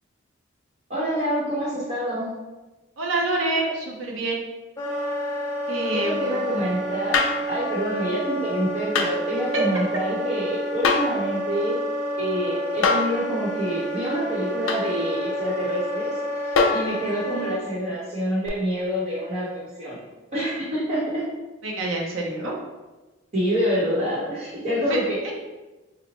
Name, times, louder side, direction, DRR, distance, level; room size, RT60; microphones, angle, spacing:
voice 1, 0.9-2.3 5.9-11.8 12.2-19.5 19.8-20.0 20.3-21.2 23.3-25.3, equal, 35° right, -9 dB, 0.9 m, -27 dB
voice 2, 3.0-4.4 5.7-6.4 9.5-9.6 21.6-22.5 24.9-25.3, right 2 dB, 80° right, -1 dB, 0.7 m, -27 dB
Wind instrument woodwind instrument, 4.8-17.6, equal, 15° left, 0.4 m, -30 dB
sound 1, 7.1-7.5 8.9-9.2 10.8-11.2 12.8-13.2 14.7-14.9 16.6-16.9 18.5-18.6, left 4 dB, 80° left, 0.4 m, -21 dB
3.9 x 2.1 x 2.9 m, 1.1 s
head